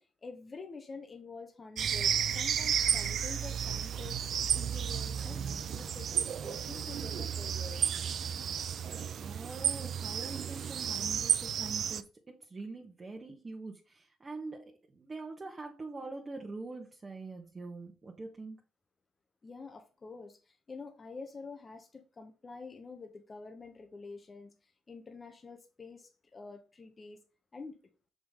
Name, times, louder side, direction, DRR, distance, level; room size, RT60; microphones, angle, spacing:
voice 1, 0.0-8.1 19.4-27.2 27.5-27.8, left 4 dB, 30° left, 1.0 m, -48 dB
sound 1, 1.8-12.0, right 8 dB, 60° right, 0.5 m, -32 dB
voice 2, 9.2-18.6, right 3 dB, 30° right, 1.2 m, -44 dB
6.0 x 5.2 x 3.7 m
cardioid pair, 90°, 0 cm